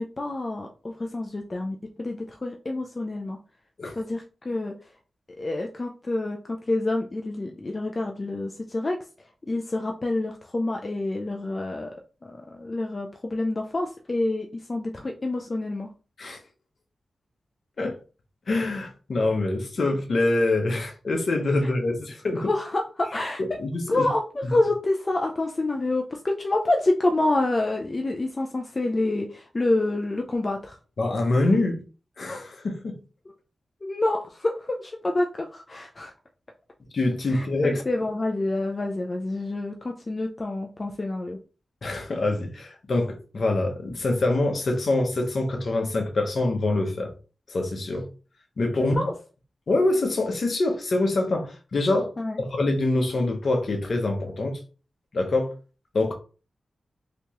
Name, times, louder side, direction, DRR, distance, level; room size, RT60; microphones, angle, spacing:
voice 1, 0.0-3.4 4.0-4.7 5.4-9.0 9.4-11.9 12.2-15.9 22.4-23.4 23.9-30.8 33.8-36.1 37.3-41.4 49.0-49.1 52.2-52.4, left 2 dB, 35° left, 0.4 m, -27 dB
voice 2, 18.5-22.5 23.4-24.1 31.0-31.8 32.2-33.0 36.9-37.8 41.8-47.1 47.5-48.1 48.6-49.1 49.7-52.1 52.4-54.6 55.1-55.5 55.9-56.1, left 2 dB, 60° left, 0.9 m, -25 dB
3.3 x 2.9 x 2.9 m
wide cardioid pair, 100°, 0 cm